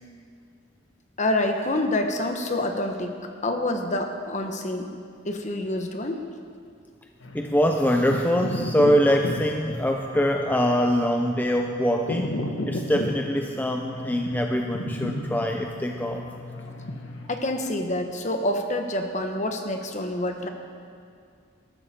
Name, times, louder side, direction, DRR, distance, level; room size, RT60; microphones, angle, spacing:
voice 1, 1.2-4.9 5.2-6.2 17.3-20.5, left 1 dB, 35° left, 5 dB, 1.2 m, -27 dB
sound 1, 7.2-17.3, left 1 dB, 75° left, 1.5 m, -34 dB
voice 2, 7.3-12.4 12.7-16.3, equal, 10° left, 3 dB, 0.5 m, -23 dB
20.5 x 13.0 x 4.4 m, 2.4 s
head